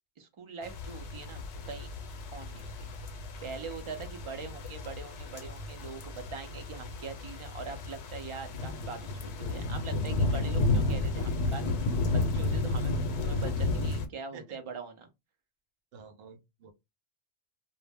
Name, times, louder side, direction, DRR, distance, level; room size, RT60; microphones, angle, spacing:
voice 1, 0.2-1.9 2.3-2.9 3.4-11.9 12.3-12.9 13.2-15.1, right 5 dB, 50° right, 0.3 m, -43 dB
sound 1, 0.6-14.1, left 2 dB, 75° left, 0.8 m, -32 dB
voice 2, 15.9-16.7, right 5 dB, 65° right, 0.8 m, -51 dB
2.0 x 2.0 x 3.4 m
omnidirectional pair, 1.1 m